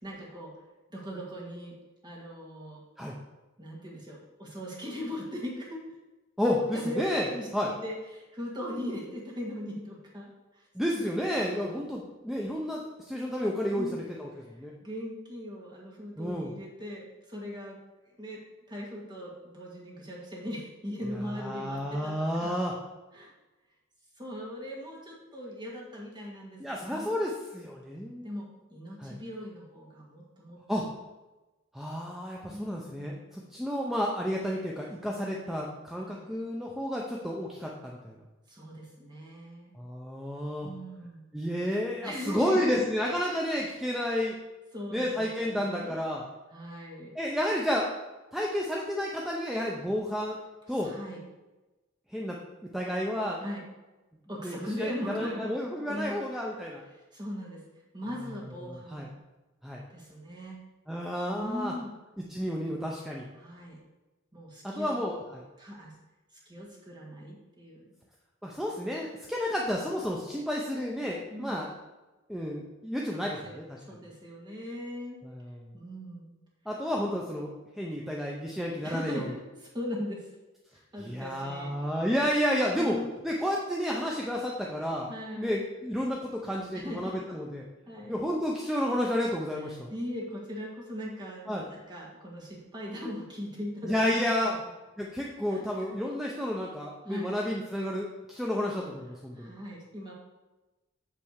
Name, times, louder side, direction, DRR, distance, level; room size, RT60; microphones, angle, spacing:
voice 1, 0.0-0.5 0.9-1.7 2.0-2.8 3.6-5.8 6.7-10.6 10.9-11.1 13.8-14.0 14.8-17.8 18.2-18.4 18.7-22.5 23.1-23.3 24.2-27.2 28.2-28.5 28.7-30.8 32.4-33.2 36.0-36.3 38.5-39.7 40.6-41.2 42.0-42.9 44.7-46.0 46.5-47.1 50.8-51.2 53.4-53.7 54.3-55.5 55.9-56.3 57.1-57.6 57.9-59.1 59.9-60.6 61.3-61.9 63.4-63.8 64.3-65.0 65.6-65.9 66.5-67.9 71.3-71.7 73.1-73.6 73.9-75.2 75.7-76.3 78.8-80.3 80.7-81.8 82.8-83.1 85.1-85.6 86.7-87.2 87.9-88.2 89.9-94.5 95.5-95.9 97.1-97.3 99.3-100.1, equal, 20° right, -3 dB, 1.8 m, -39 dB
voice 2, 6.4-7.3 7.5-7.7 10.7-14.3 14.6-14.7 16.2-16.5 21.3-22.7 26.6-28.3 29.0-29.1 30.7-30.8 31.7-38.2 39.7-40.7 41.3-44.3 44.9-46.2 47.1-47.9 48.3-50.4 50.7-50.9 52.1-52.4 52.7-53.4 54.4-56.8 58.6-59.1 59.6-59.8 60.9-61.7 62.3-63.3 64.6-65.4 68.4-71.7 72.3-73.8 75.2-75.7 76.7-79.3 81.0-83.0 83.2-85.1 85.4-87.6 88.1-89.9 91.5-91.6 93.8-94.5 95.0-99.5, equal, ahead, -2 dB, 0.6 m, -31 dB
8.6 x 3.4 x 6.4 m, 1.1 s
head